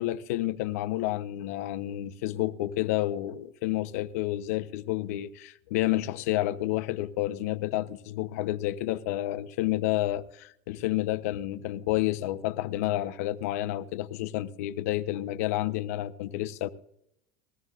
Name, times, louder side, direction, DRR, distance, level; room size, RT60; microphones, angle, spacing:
voice 1, 0.0-16.7, left 15 dB, 90° left, 0.9 m, -30 dB
21.0 x 14.5 x 2.5 m
cardioid pair, 155°, 8 cm